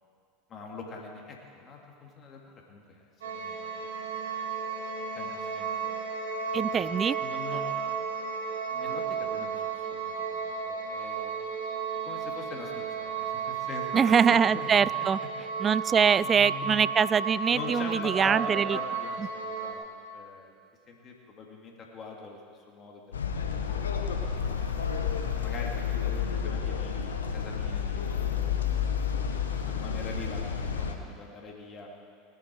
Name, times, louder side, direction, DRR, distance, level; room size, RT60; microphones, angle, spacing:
voice 1, 0.5-4.2 5.1-5.9 7.2-7.8 8.7-11.3 11.9-15.1 16.0-17.0 17.5-19.8 20.1-20.6 20.9-23.3 23.6-24.4 25.4-28.5 29.3-31.9, left 4 dB, 35° left, 0 dB, 2.7 m, -43 dB
sound 1, 3.2-19.7, right 6 dB, 75° right, 1.7 m, -33 dB
voice 2, 6.5-7.2 13.9-15.2 15.6-18.8, right 7 dB, 30° right, 19 dB, 0.3 m, -23 dB
sound 2, 23.1-30.9, left 7 dB, 85° left, 1.1 m, -30 dB
19.0 x 10.5 x 4.8 m, 2.3 s
hypercardioid pair, 80°, 0 cm